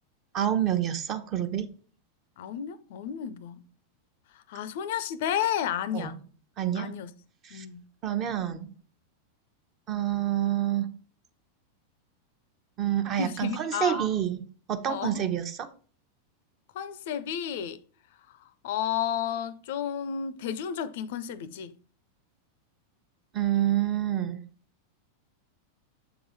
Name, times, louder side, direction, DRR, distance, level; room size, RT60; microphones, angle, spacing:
voice 1, 0.3-1.7 5.9-6.1 6.6-7.0 7.4-7.6 8.0-8.7 9.9-10.9 12.8-14.4 14.7-15.7 23.3-24.4, right 11 dB, 35° right, 0.8 m, -27 dB
voice 2, 2.4-3.6 4.5-6.2 6.7-7.1 7.5-7.8 13.2-14.1 14.9-15.2 16.7-17.8 18.6-21.7, left 9 dB, 55° left, 0.4 m, -32 dB
7.1 x 3.8 x 4.6 m
figure-of-eight pair, 90°, 0 cm